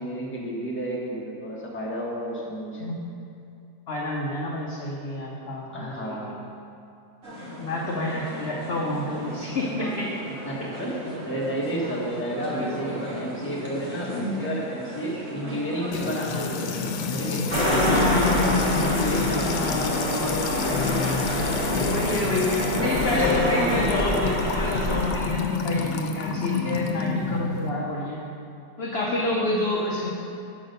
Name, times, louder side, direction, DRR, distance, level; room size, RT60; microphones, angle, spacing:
voice 1, 0.0-2.9 5.7-6.5 10.4-18.0 18.7-19.9 29.0-29.3, right 1 dB, 10° left, -5 dB, 1.1 m, -32 dB
voice 2, 3.9-6.3 7.6-10.1 12.6-12.7 13.9-14.4 17.8-19.9 21.8-28.2 28.8-30.1, left 2 dB, 50° left, -3 dB, 0.8 m, -28 dB
sound 1, 7.2-23.8, equal, 50° right, 1.5 m, -35 dB
Music / Water tap faucet / Trickle dribble, 15.9-27.7, left 5 dB, 85° left, 1.2 m, -29 dB
sound 2, 17.5-25.2, left 1 dB, 15° right, 1.5 m, -26 dB
7.3 x 6.0 x 5.3 m, 2.5 s
omnidirectional pair, 1.8 m